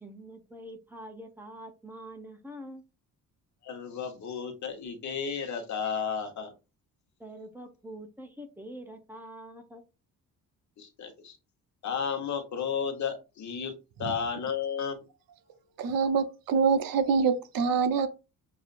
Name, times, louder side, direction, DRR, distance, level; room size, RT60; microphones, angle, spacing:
voice 1, 0.0-2.8 7.2-9.8, right 1 dB, 5° right, 0.6 m, -45 dB
voice 2, 3.6-6.5 10.8-11.4 11.8-13.7 14.0-15.0, left 6 dB, 55° left, 1.2 m, -33 dB
voice 3, 15.8-18.1, right 5 dB, 70° right, 0.7 m, -25 dB
6.6 x 2.7 x 2.5 m
cardioid pair, 140°, 35 cm